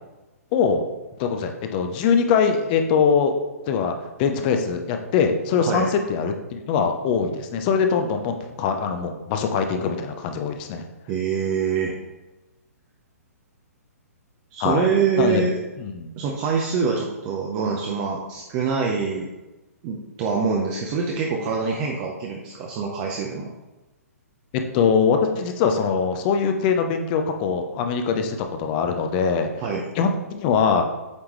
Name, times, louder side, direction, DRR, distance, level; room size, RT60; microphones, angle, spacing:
voice 1, 0.5-0.8 1.2-3.4 3.7-10.8 14.6-14.9 15.2-15.4 15.8-16.1 24.5-29.6 29.9-30.9, left 6 dB, 35° left, 6 dB, 0.7 m, -22 dB
voice 2, 11.1-11.9 14.5-15.6 16.2-19.3 19.8-23.5 29.6-29.8, right 5 dB, 30° right, -1 dB, 0.8 m, -25 dB
8.2 x 3.6 x 3.1 m, 1.1 s
figure-of-eight pair, 125°, 9 cm